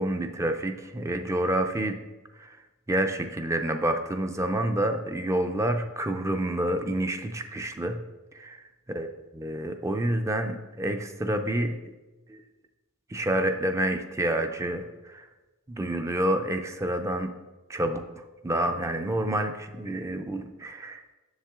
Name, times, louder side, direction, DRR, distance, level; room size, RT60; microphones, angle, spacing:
voice 1, 0.0-2.0 2.4-2.6 2.9-8.0 8.3-11.8 12.3-12.4 13.1-15.3 15.7-17.3 17.7-21.0, right 1 dB, 15° right, 6 dB, 0.4 m, -28 dB
7.3 x 6.7 x 3.6 m, 1.1 s
head